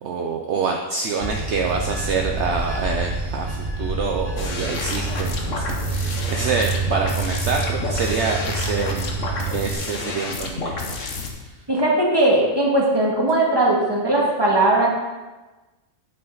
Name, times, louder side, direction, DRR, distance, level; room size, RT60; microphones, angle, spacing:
voice 1, 0.0-9.1 9.4-11.0 11.4-11.5, right 4 dB, 65° right, 2 dB, 0.9 m, -26 dB
Bell / Train, 1.2-9.7, right 3 dB, 45° right, 2.1 m, -27 dB
sound 1, 4.4-11.3, left 3 dB, 65° left, 1.4 m, -30 dB
voice 2, 11.7-14.9, right 2 dB, 20° right, -3 dB, 1.9 m, -19 dB
8.8 x 8.0 x 3.9 m, 1.2 s
omnidirectional pair, 1.4 m